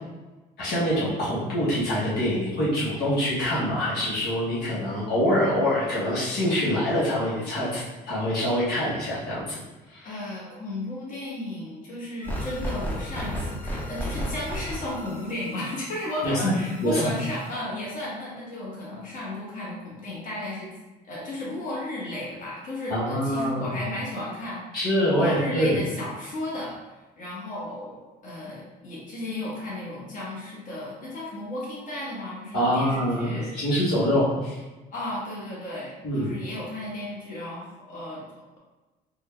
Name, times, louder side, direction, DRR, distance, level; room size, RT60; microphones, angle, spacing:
voice 1, 0.6-9.6 9.9-10.2 16.2-16.5 16.8-17.1 22.9-23.7 24.7-25.8 32.5-34.6 36.0-36.3, equal, 70° left, -9 dB, 1.3 m, -25 dB
voice 2, 10.0-20.7 21.0-24.6 25.1-26.8 27.2-33.6 34.9-38.6, left 1 dB, 50° left, -6 dB, 1.4 m, -34 dB
sound 1, 12.2-17.5, equal, 10° left, 0.6 m, -34 dB
3.8 x 2.4 x 3.3 m, 1.2 s
cardioid pair, 110°, 17 cm